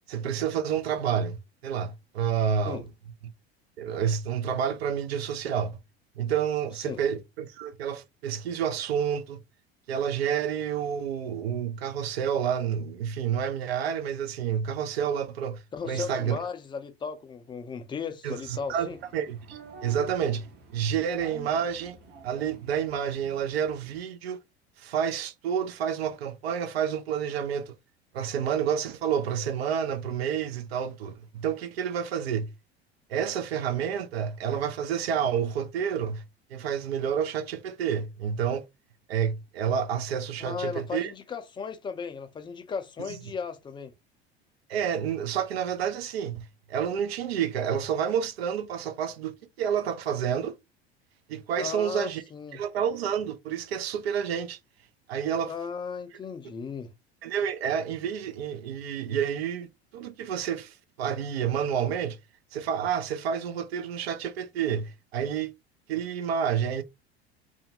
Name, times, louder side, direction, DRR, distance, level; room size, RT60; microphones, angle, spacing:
voice 1, 0.1-2.8 3.8-5.8 6.2-9.4 9.9-16.4 18.2-20.5 20.7-22.0 22.2-24.4 24.8-27.8 28.1-32.5 33.1-36.2 36.5-38.6 39.1-41.1 44.7-50.6 51.3-52.2 52.5-54.6 55.1-55.5 57.2-62.2 62.5-65.5 65.9-66.8, right 8 dB, 70° right, 0.6 m, -29 dB
voice 2, 15.7-19.0 40.4-43.9 51.6-52.6 55.5-56.9, left 5 dB, 15° left, 0.4 m, -36 dB
sound 1, 18.3-24.0, right 3 dB, 30° right, 0.7 m, -49 dB
2.6 x 2.1 x 2.7 m
figure-of-eight pair, 70°, 32 cm